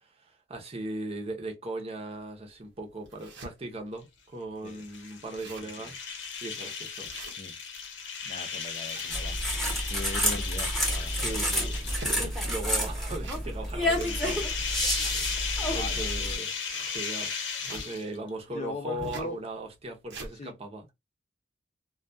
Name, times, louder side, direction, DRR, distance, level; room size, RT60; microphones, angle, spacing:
voice 1, 0.0-6.0 6.4-7.1 11.1-14.8 15.7-17.4 17.6-20.9, right 2 dB, 35° right, 0.6 m, -38 dB
sound 1, 2.2-2.3 2.8-3.5 4.1-4.2 4.4-4.5 4.9-5.0 5.2-5.8 6.2-6.4 7.0-7.8 8.6-10.1 10.5-11.1 11.7-12.6 13.1-13.7 13.9-17.9 19.0-19.3 19.8-20.3, right 2 dB, 70° right, 0.8 m, -44 dB
sound 2, 4.7-12.4 13.8-18.3, left 6 dB, 75° left, 0.7 m, -36 dB
voice 2, 8.2-9.4 9.9-12.2 15.7-16.1 18.5-19.4 20.4-20.6, left 2 dB, 35° left, 0.4 m, -40 dB
sound 3, 9.1-16.4, equal, ahead, 0.8 m, -29 dB
2.3 x 2.2 x 2.5 m
head